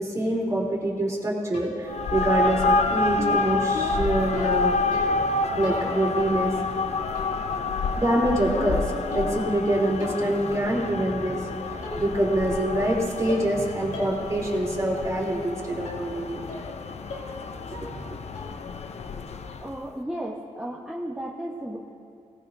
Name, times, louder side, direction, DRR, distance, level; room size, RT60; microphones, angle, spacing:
voice 1, 0.0-4.7 5.5-6.5 7.9-11.4 11.7-16.4 17.8-18.0, right 1 dB, 25° right, -4 dB, 3.2 m, -25 dB
sound 1, 1.5-2.1 3.2-5.3 5.6-6.3 7.1-7.6 7.8-9.6 10.0-10.4 11.3-11.4 11.8-12.3 12.6-13.0 13.3-13.6 13.9-14.2 14.6-14.7 15.8-16.1 16.5-16.8 17.1-17.4 17.7-18.1 18.3-18.7, left 2 dB, 80° left, 2.5 m, -38 dB
sound 2, 1.9-19.8, left 3 dB, 55° left, 0.7 m, -28 dB
voice 2, 19.6-21.8, right 1 dB, 5° right, -5 dB, 1.2 m, -34 dB
18.0 x 15.5 x 2.7 m, 2.4 s
cardioid pair, 80°, 13 cm